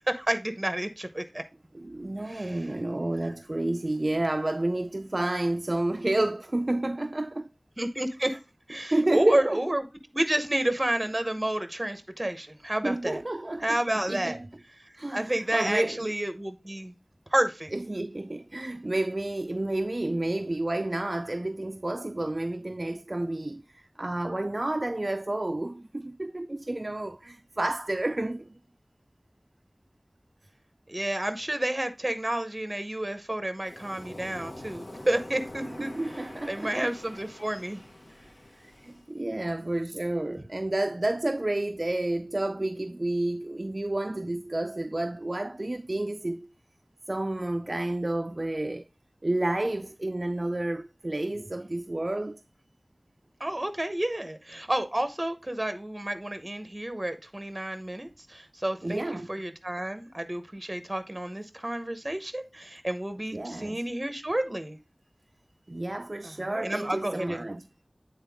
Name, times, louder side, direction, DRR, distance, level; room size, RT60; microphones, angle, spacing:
voice 1, 0.1-1.4 2.2-2.7 7.8-8.4 8.7-9.9 10.1-13.2 13.6-14.4 14.8-16.9 17.3-17.7 30.9-35.9 36.5-37.8 53.4-59.0 59.3-64.8 66.2-67.5, right 1 dB, 30° right, 0.8 m, -30 dB
voice 2, 1.7-7.5 8.1-8.2 8.9-9.6 12.8-14.5 15.0-16.0 17.7-28.6 35.6-36.9 38.6-46.4 47.1-48.8 49.2-52.4 58.8-59.3 63.3-63.8 65.7-67.6, right 1 dB, 50° right, 0.3 m, -30 dB
Waves surf, 33.6-39.1, left 1 dB, 80° left, 1.8 m, -45 dB
8.8 x 3.9 x 3.4 m
wide cardioid pair, 45°, 0 cm